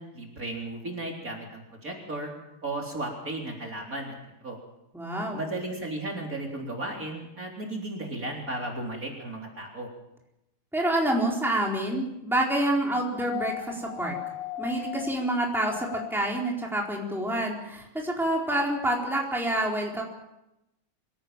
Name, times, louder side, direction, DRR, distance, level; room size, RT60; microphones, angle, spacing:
voice 1, 0.0-2.3 2.6-4.2 4.4-4.6 5.3-9.9, right 2 dB, 40° right, 0 dB, 4.2 m, -35 dB
voice 2, 4.9-5.4 10.7-14.1 14.6-20.0, right 1 dB, ahead, -1 dB, 4.1 m, -27 dB
sound 1, 13.1-16.4 17.8-17.9, left 11 dB, 65° left, 2.3 m, -37 dB
25.0 x 17.5 x 7.5 m, 0.90 s
omnidirectional pair, 2.3 m